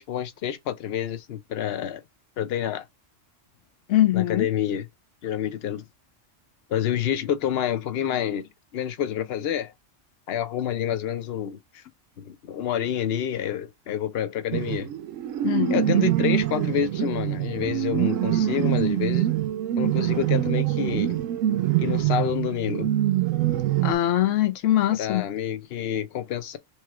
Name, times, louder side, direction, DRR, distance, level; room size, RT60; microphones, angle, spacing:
voice 1, 0.0-2.0 2.4-2.9 4.1-4.8 5.2-5.8 6.7-9.7 10.3-11.8 12.2-14.9 15.7-19.3 19.8-21.2 21.8-22.9 25.0-26.6, left 9 dB, 60° left, 0.8 m, -28 dB
voice 2, 3.9-4.5 15.4-15.8 23.8-25.2, left 13 dB, 85° left, 1.0 m, -22 dB
sound 1, 14.5-23.9, right 13 dB, 85° right, 1.0 m, -24 dB
3.6 x 3.1 x 4.6 m
omnidirectional pair, 1.3 m